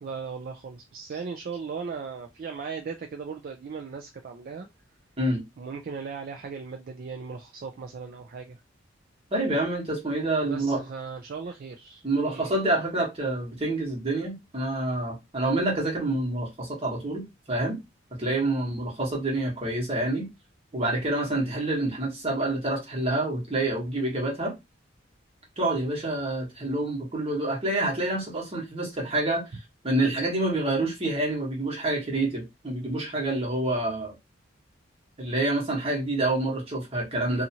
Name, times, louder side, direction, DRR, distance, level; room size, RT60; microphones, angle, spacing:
voice 1, 0.0-4.7 5.6-8.6 10.4-12.6, right 5 dB, 50° right, 0.4 m, -37 dB
voice 2, 9.3-10.9 12.0-17.8 18.2-20.3 20.7-24.5 25.6-29.4 29.8-34.1 35.2-37.4, right 2 dB, 30° right, 1.2 m, -27 dB
2.7 x 2.4 x 2.7 m
head